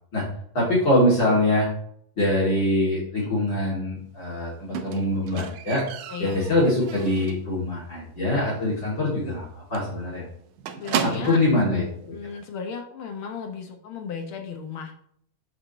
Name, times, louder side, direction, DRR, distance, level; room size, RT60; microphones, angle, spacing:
voice 1, 0.5-1.7 2.2-5.8 6.2-10.3 11.0-12.1, left 1 dB, 40° left, -7 dB, 3.2 m, -23 dB
Squeak, 4.7-7.5 7.8-8.2 8.5-8.6 9.0-9.1 9.4-9.5 9.7-11.6 12.4-12.5, right 8 dB, 80° right, 2.1 m, -33 dB
voice 2, 10.8-11.4 12.1-15.0, left 6 dB, 75° left, 4 dB, 1.2 m, -35 dB
12.0 x 5.0 x 3.0 m, 0.65 s
omnidirectional pair, 3.6 m